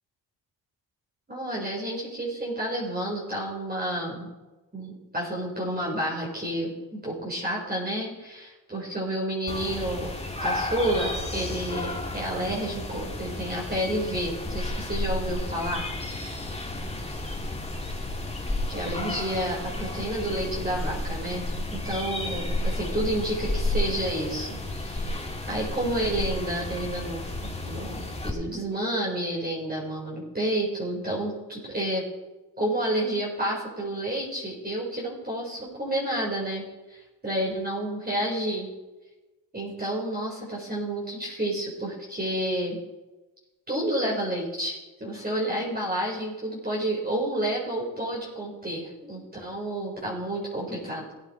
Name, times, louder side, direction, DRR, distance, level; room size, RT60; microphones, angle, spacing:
voice 1, 1.3-4.3 4.7-10.1 10.4-16.2 18.7-21.4 21.7-27.2 27.6-32.0 32.6-38.7 39.5-42.8 43.7-51.0, right 1 dB, 20° right, -4 dB, 4.8 m, -30 dB
sound 1, 9.5-28.3, left 1 dB, 15° left, 2.4 m, -32 dB
18.0 x 9.2 x 4.5 m, 1.1 s
supercardioid pair, 60°, 45 cm